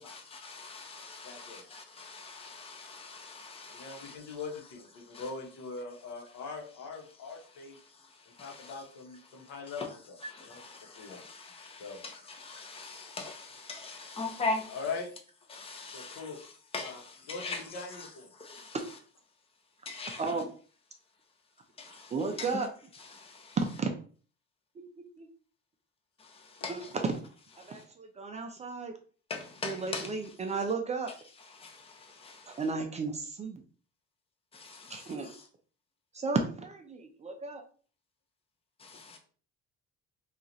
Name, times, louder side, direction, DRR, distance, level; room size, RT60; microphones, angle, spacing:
voice 1, 0.0-4.2 5.1-5.2 8.4-8.7 10.3-14.8 15.5-16.3 16.7-17.6 18.4-18.8 19.9-20.2 21.8-22.1 22.4-22.5 23.1-23.6 26.2-26.7 27.6-27.7 29.3-30.1 31.6-32.6 34.5-35.1 38.8-39.2, left 3 dB, 20° left, 0.6 m, -41 dB
voice 2, 1.2-1.6 3.7-7.8 8.3-11.2 11.8-12.0 14.7-15.1 15.8-16.4 16.8-18.3, left 4 dB, 80° left, 1.0 m, -42 dB
voice 3, 20.2-20.5 21.9-22.7 23.6-24.0 24.8-25.3 26.7-27.2 27.6-28.9 29.6-31.1 32.5-33.6 34.9-35.3 36.1-37.6, right 4 dB, 25° right, 0.3 m, -34 dB
2.9 x 2.4 x 3.9 m
cardioid pair, 160°, 29 cm